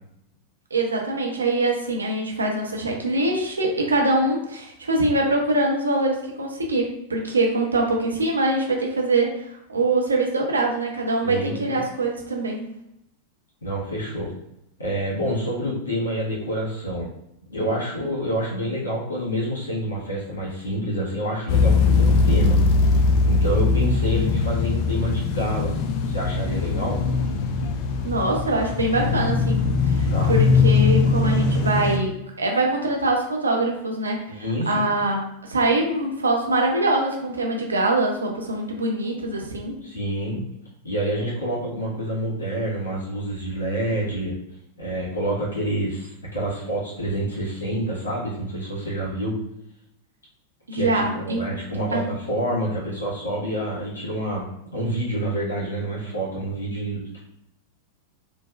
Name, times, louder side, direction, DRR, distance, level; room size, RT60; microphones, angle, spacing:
voice 1, 0.7-12.7 28.0-34.3 34.7-39.8 50.7-51.4 51.9-52.1, right 2 dB, 75° right, 0 dB, 0.5 m, -23 dB
voice 2, 11.2-11.8 13.6-14.3 14.8-17.1 17.5-22.9 23.2-25.7 26.0-27.0 30.1-30.3 34.3-34.9 39.8-40.4 40.8-44.3 44.8-49.4 50.7-54.5 54.7-57.2, right 1 dB, 75° left, -5 dB, 1.2 m, -27 dB
sound 1, 21.5-32.0, left 4 dB, 45° left, 0.3 m, -20 dB
3.3 x 2.1 x 2.3 m, 0.81 s
figure-of-eight pair, 90°, 0 cm